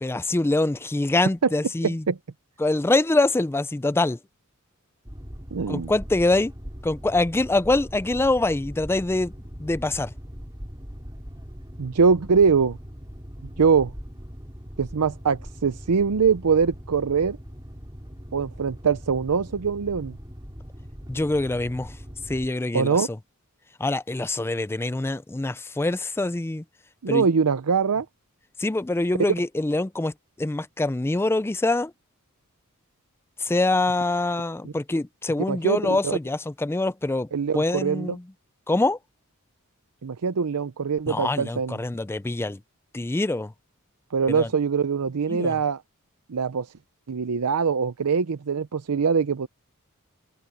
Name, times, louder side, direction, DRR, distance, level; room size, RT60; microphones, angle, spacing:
voice 1, 0.0-2.0 2.6-4.2 5.7-6.5 6.8-9.3 9.6-10.1 21.1-21.9 22.3-23.1 23.8-26.6 27.1-27.3 28.6-30.1 30.4-31.9 33.4-37.3 37.5-38.2 38.7-39.0 41.1-42.6 42.9-43.5 44.3-44.5 45.3-45.6, left 2 dB, 10° left, 0.4 m, -24 dB
voice 2, 1.8-2.2 5.5-5.9 11.8-12.8 13.6-13.9 14.8-17.4 18.3-20.2 22.7-23.1 27.0-28.1 34.6-34.7 35.5-36.2 37.3-38.1 40.0-41.8 44.1-45.8 46.3-46.7 47.1-49.5, right 5 dB, 90° right, 0.6 m, -23 dB
Boat Water vehicle, 5.0-22.5, equal, 20° right, 4.2 m, -41 dB
head